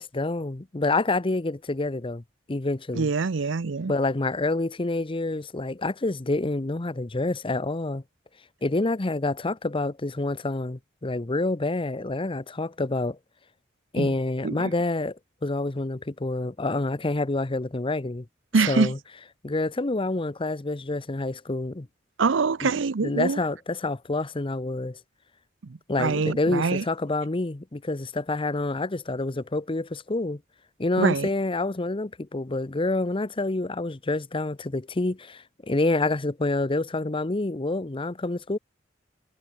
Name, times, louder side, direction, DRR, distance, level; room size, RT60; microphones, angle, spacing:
voice 1, 0.0-2.2 2.5-3.1 3.9-8.0 8.6-13.2 13.9-18.3 18.7-19.0 19.4-21.9 22.6-22.7 23.0-25.0 25.9-30.4 30.8-38.6, left 2 dB, 25° left, 0.8 m, -27 dB
voice 2, 2.9-3.9 14.0-14.1 14.4-14.7 18.5-18.9 22.2-23.4 26.0-26.8 31.0-31.3, right 4 dB, 75° right, 0.6 m, -24 dB
head